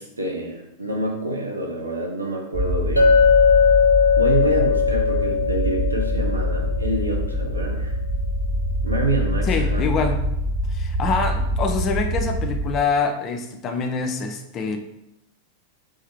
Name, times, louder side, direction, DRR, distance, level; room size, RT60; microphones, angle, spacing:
voice 1, 0.0-3.1 4.2-7.9 8.8-9.8, right 2 dB, 80° right, 0 dB, 0.7 m, -27 dB
sound 1, 2.5-12.7, equal, 15° right, 0.7 m, -25 dB
Chink clink, 3.0-7.2, left 6 dB, 90° left, 0.4 m, -19 dB
voice 2, 9.5-10.2 10.7-14.8, left 4 dB, 30° left, 5 dB, 0.4 m, -25 dB
3.4 x 2.7 x 3.5 m, 0.86 s
figure-of-eight pair, 90°, 0 cm